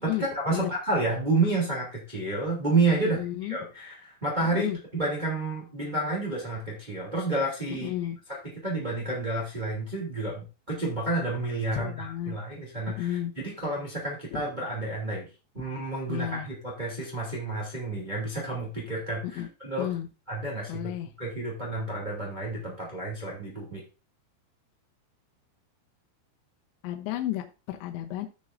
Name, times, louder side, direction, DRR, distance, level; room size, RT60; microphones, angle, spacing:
voice 1, 0.0-3.2 3.5-7.9 8.6-15.3 15.5-19.9 20.3-20.9 21.2-23.8, right 2 dB, 70° right, -4 dB, 0.4 m, -30 dB
voice 2, 3.1-3.6 4.5-4.8 7.8-8.2 11.8-12.4 13.0-13.3 14.3-14.4 16.1-16.5 19.2-19.5 19.8-20.1 20.7-21.1 26.8-28.3, left 13 dB, 75° left, 4 dB, 2.9 m, -32 dB
15.5 x 5.4 x 2.5 m, 0.31 s
omnidirectional pair, 5.8 m